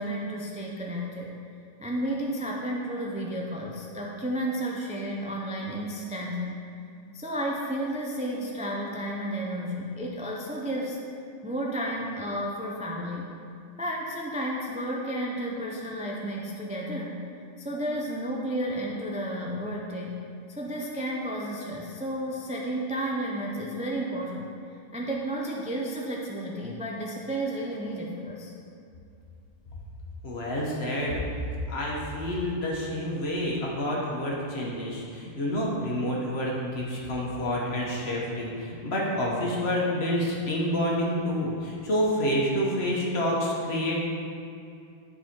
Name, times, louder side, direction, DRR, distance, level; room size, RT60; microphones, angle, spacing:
voice 1, 0.0-1.3 1.8-6.6 7.1-11.0 11.4-13.3 13.8-17.2 17.6-20.2 20.5-24.5 24.9-28.5, right 1 dB, 10° right, -2 dB, 0.3 m, -32 dB
voice 2, 30.2-31.2 31.7-44.0, equal, 50° left, -4 dB, 1.4 m, -28 dB
10.0 x 4.1 x 4.4 m, 2.5 s
omnidirectional pair, 1.4 m